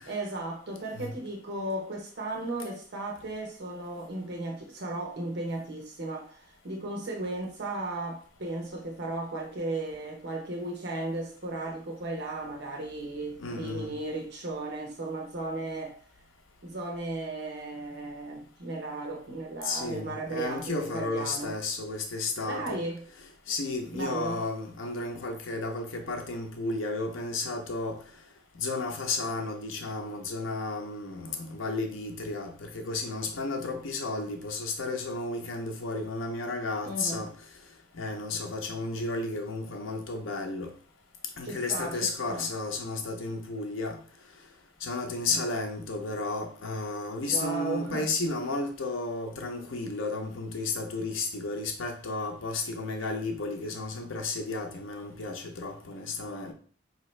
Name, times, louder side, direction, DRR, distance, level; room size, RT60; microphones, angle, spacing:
voice 1, 0.1-16.0 16.6-21.5 22.4-23.0 23.9-24.4 36.8-37.2 41.4-42.5 45.3-45.4 47.3-48.1, right 2 dB, 60° right, 0.9 m, -35 dB
voice 2, 13.4-13.9 19.6-22.8 23.5-28.0 28.6-37.3 38.0-40.7 41.4-44.0 44.8-56.5, left 3 dB, 75° left, 0.7 m, -33 dB
5.1 x 2.8 x 3.2 m
head